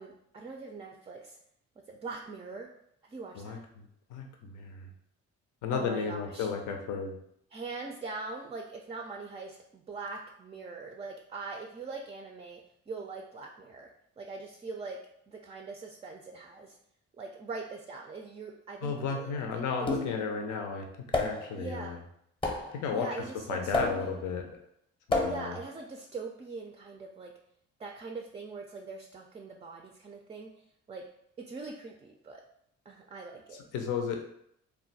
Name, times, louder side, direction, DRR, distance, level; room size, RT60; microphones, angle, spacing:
voice 1, 0.0-1.4 1.9-2.7 3.1-3.6 5.7-6.5 7.5-16.8 17.2-20.0 21.6-22.0 22.9-24.1 25.2-27.3 27.8-30.5 30.9-31.0 31.4-32.4 32.9-33.6, right 3 dB, 20° right, 2 dB, 0.3 m, -42 dB
voice 2, 3.3-4.9 5.6-7.2 18.8-20.9 21.1-22.0 22.8-24.6 25.1-25.6 33.7-34.2, left 5 dB, 85° left, 3 dB, 0.6 m, -34 dB
sound 1, 19.9-20.3 21.1-21.6 22.4-22.8 23.7-24.2 25.1-25.6, left 2 dB, 15° left, 0.7 m, -31 dB
2.4 x 2.2 x 3.9 m, 0.72 s
cardioid pair, 90°, 30 cm